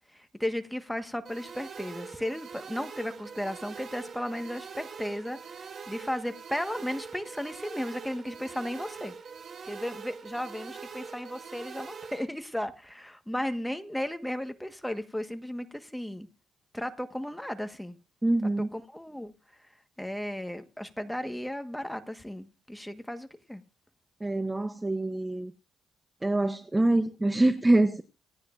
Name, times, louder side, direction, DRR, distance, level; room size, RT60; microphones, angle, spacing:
voice 1, 0.1-9.1 9.6-16.3 16.7-18.0 18.6-23.6, left 1 dB, 5° left, 1.5 m, -35 dB
sound 1, 1.3-12.3, right 6 dB, 50° right, 2.9 m, -43 dB
voice 2, 18.2-18.7 24.2-25.5 26.2-28.0, right 2 dB, 15° right, 0.8 m, -25 dB
26.0 x 9.5 x 2.6 m
cardioid pair, 90°, 0 cm